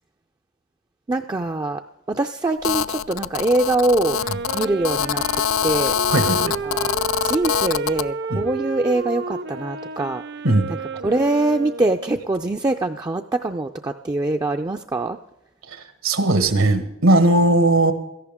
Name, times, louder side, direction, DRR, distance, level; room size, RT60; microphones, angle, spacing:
voice 1, 1.1-1.8 2.1-4.2 4.5-5.2 5.6-5.9 6.4-6.9 7.2-10.2 11.0-15.2, right 2 dB, 20° right, 4 dB, 0.4 m, -23 dB
Telephone, 2.6-8.1, left 9 dB, 70° left, 0.4 m, -24 dB
Wind instrument woodwind instrument, 3.9-12.3, right 4 dB, 55° right, 0.6 m, -31 dB
voice 2, 6.1-6.6 8.3-8.4 10.4-10.6 15.7-15.8 16.0-17.9, right 2 dB, 80° right, 9 dB, 1.6 m, -18 dB
17.0 x 14.0 x 3.6 m, 0.88 s
head